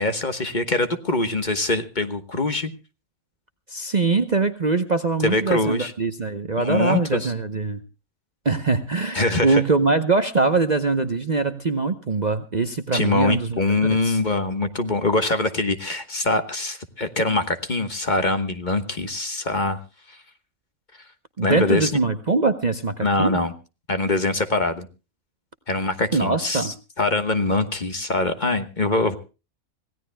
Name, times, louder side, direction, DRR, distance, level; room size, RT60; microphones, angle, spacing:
voice 1, 0.0-2.7 5.2-5.9 6.6-7.3 9.1-9.6 12.9-19.8 20.1-20.2 21.4-22.0 23.0-23.5 23.9-24.9 25.7-29.2, left 2 dB, 35° left, 9 dB, 1.3 m, -23 dB
voice 2, 3.7-7.8 8.4-14.2 21.4-23.4 26.1-26.7, right 3 dB, 35° right, 9 dB, 0.9 m, -23 dB
26.5 x 17.0 x 2.2 m, 0.32 s
omnidirectional pair, 1.5 m